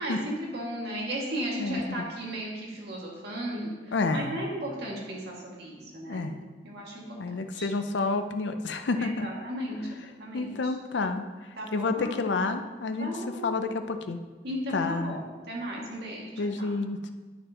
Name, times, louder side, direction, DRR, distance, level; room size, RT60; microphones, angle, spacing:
voice 1, 0.0-6.3 6.6-7.2 7.5-7.7 9.0-9.8 10.2-10.7 11.6-12.1 13.0-13.5 14.4-16.7, equal, 65° right, -3 dB, 2.0 m, -35 dB
voice 2, 3.9-4.4 6.1-6.4 7.2-9.3 10.3-11.2 11.7-14.2 14.7-15.2 16.4-17.1, left 3 dB, 75° left, 8 dB, 0.5 m, -29 dB
11.0 x 6.6 x 2.9 m, 1.3 s
head